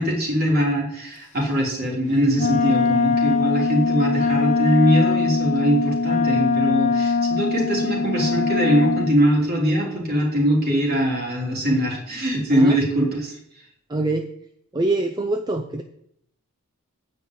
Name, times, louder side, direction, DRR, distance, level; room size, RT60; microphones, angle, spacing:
voice 1, 0.0-13.3, equal, 45° right, -2 dB, 3.2 m, -21 dB
Wind instrument woodwind instrument, 2.3-9.2, left 4 dB, 35° left, 1.0 m, -22 dB
voice 2, 13.9-14.3 14.7-15.8, right 2 dB, 20° right, 5 dB, 0.5 m, -24 dB
9.3 x 5.5 x 7.9 m, 0.72 s
head